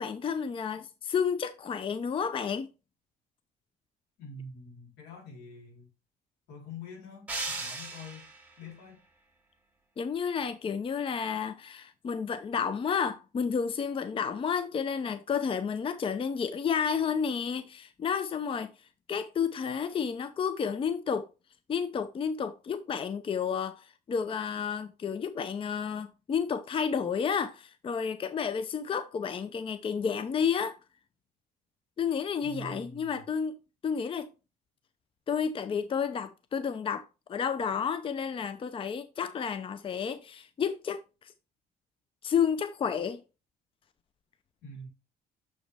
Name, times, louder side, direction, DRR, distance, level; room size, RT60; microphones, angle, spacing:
voice 1, 0.0-2.7 10.0-18.7 19.1-21.3 21.7-30.8 32.0-33.6 33.8-34.3 35.3-41.3 42.2-43.2, left 6 dB, 30° left, 0.6 m, -31 dB
voice 2, 4.2-5.9 6.5-8.3 8.6-9.0 32.4-33.3 44.6-44.9, left 1 dB, 85° left, 3.8 m, -45 dB
sound 1, 7.3-8.5, right 2 dB, 10° right, 2.4 m, -36 dB
7.1 x 5.0 x 3.4 m
cardioid pair, 110°, 17 cm